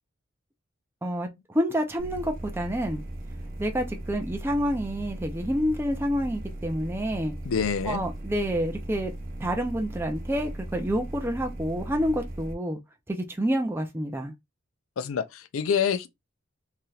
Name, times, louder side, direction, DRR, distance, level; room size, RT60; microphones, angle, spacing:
voice 1, 1.0-3.0 3.6-7.3 7.9-9.1 9.4-12.8 13.1-14.3, equal, 10° right, 0.5 m, -28 dB
sound 1, 2.0-12.5, right 1 dB, 40° right, 0.8 m, -38 dB
voice 2, 7.4-8.0 15.0-16.1, left 7 dB, 80° left, 0.4 m, -26 dB
3.2 x 2.8 x 2.3 m
head